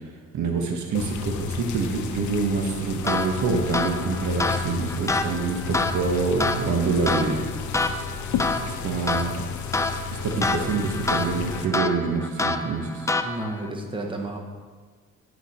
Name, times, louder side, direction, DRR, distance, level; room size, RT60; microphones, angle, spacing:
voice 1, 0.3-7.5 8.6-9.4 10.2-13.1, right 4 dB, 70° right, 3 dB, 1.2 m, -26 dB
sound 1, 0.9-11.7, left 6 dB, 75° left, 0.7 m, -32 dB
sound 2, 3.0-13.7, left 3 dB, 10° left, 0.4 m, -28 dB
voice 2, 13.2-14.4, right 2 dB, 15° right, 2 dB, 1.2 m, -31 dB
10.5 x 4.8 x 4.3 m, 1.5 s
cardioid pair, 90°, 30 cm